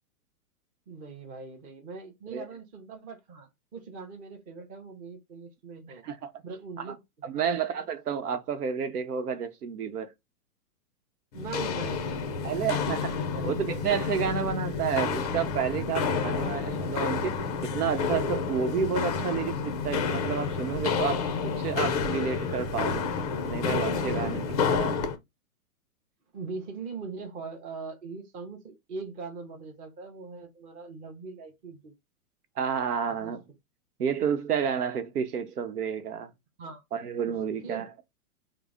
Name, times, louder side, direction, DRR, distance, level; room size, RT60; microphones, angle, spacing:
voice 1, 0.9-6.0 6.4-7.6 11.3-12.6 13.2-13.5 16.4-16.5 24.0-24.3 26.3-32.0 33.1-33.3 36.6-36.8 37.6-37.8, right 4 dB, 20° right, 0.6 m, -41 dB
voice 2, 7.2-10.1 12.4-23.1 23.4-25.0 32.6-33.4 34.0-36.3 36.9-37.9, right 7 dB, 90° right, 0.8 m, -30 dB
Walk footsteps, 11.3-25.2, left 5 dB, 30° left, 0.4 m, -29 dB
3.7 x 2.0 x 3.4 m
hypercardioid pair, 140°, 45 cm